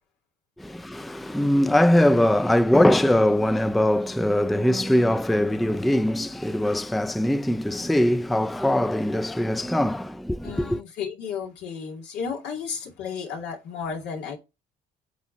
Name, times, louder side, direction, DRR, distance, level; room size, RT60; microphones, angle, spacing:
voice 1, 0.6-10.8, left 1 dB, ahead, 0.3 m, -21 dB
voice 2, 10.4-14.4, left 6 dB, 90° left, 2.5 m, -33 dB
8.3 x 3.6 x 5.4 m
cardioid pair, 110°, 17 cm